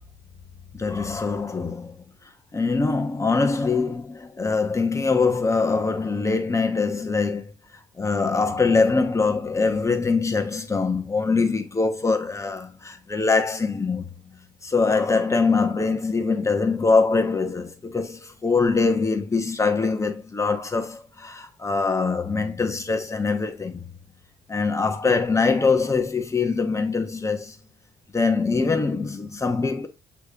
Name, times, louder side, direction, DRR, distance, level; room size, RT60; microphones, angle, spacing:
voice 1, 0.7-2.0 2.5-7.5 8.0-14.1 14.6-23.9 24.5-27.6 28.1-29.9, left 4 dB, 20° left, 1.3 m, -23 dB
8.4 x 3.5 x 3.6 m
cardioid pair, 125°, 16 cm